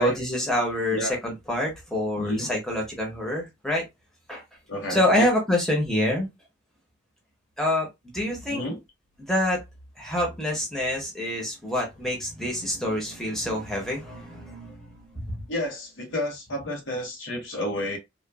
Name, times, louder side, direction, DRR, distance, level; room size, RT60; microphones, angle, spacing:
voice 1, 0.0-3.8 4.3-4.4 4.9-6.3 7.6-8.6 9.2-9.6 10.0-15.4, left 1 dB, ahead, 0.8 m, -26 dB
voice 2, 2.2-2.5 4.7-5.3 8.5-8.8 15.5-18.0, left 1 dB, 90° left, 1.0 m, -30 dB
3.0 x 2.2 x 2.2 m
head